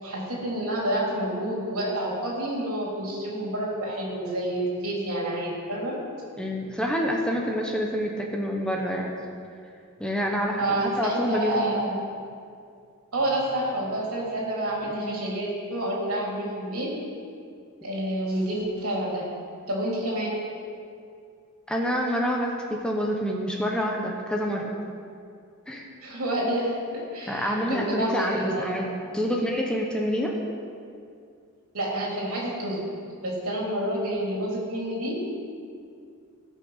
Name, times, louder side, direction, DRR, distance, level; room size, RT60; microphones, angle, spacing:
voice 1, 0.0-6.0 10.6-12.1 13.1-16.9 17.8-19.2 19.7-20.4 26.0-28.9 31.7-32.8 33.2-35.3, right 1 dB, 75° right, -4 dB, 3.4 m, -29 dB
voice 2, 6.4-9.2 10.0-11.8 14.9-15.2 21.7-22.5 22.8-24.7 25.7-25.8 27.3-30.3, equal, 5° left, -1 dB, 1.0 m, -27 dB
16.5 x 6.6 x 5.7 m, 2.3 s
head